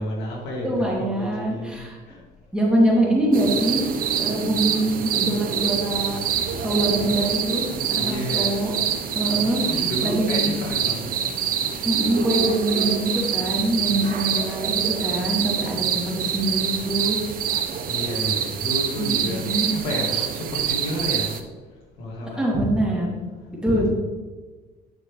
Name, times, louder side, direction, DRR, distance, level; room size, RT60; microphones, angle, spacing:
voice 1, 0.0-2.2 7.9-8.7 9.2-11.1 17.9-21.3 22.0-22.5 23.7-23.9, equal, 85° left, -2 dB, 2.4 m, -31 dB
voice 2, 0.6-2.0 2.5-6.2 6.6-8.7 9.1-10.5 11.8-17.2 19.0-19.7 20.1-20.2 22.4-23.2 23.6-23.9, right 1 dB, 5° right, -5 dB, 2.7 m, -24 dB
sound 1, 3.3-21.4, right 8 dB, 60° right, 0.8 m, -26 dB
9.5 x 6.4 x 3.3 m, 1.3 s
cardioid pair, 110°, 17 cm